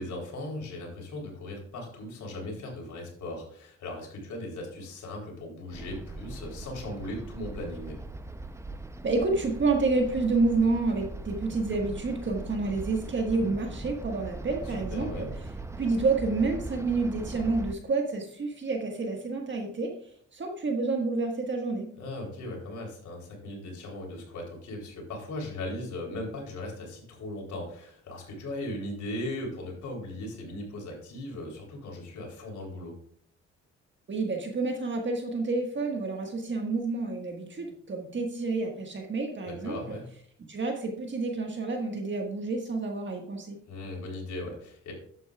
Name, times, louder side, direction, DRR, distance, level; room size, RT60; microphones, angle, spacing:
voice 1, 0.0-8.0 14.7-15.3 22.0-32.9 39.5-40.1 43.7-44.9, left 1 dB, 75° left, 0 dB, 3.6 m, -38 dB
sound 1, 5.7-17.7, right 2 dB, 10° right, 0.6 m, -40 dB
voice 2, 9.0-15.1 15.7-19.9 20.3-21.9 34.1-40.0 40.5-43.6, right 3 dB, 40° right, 2 dB, 1.6 m, -29 dB
11.5 x 8.3 x 2.4 m, 0.62 s
cardioid pair, 90°, 30 cm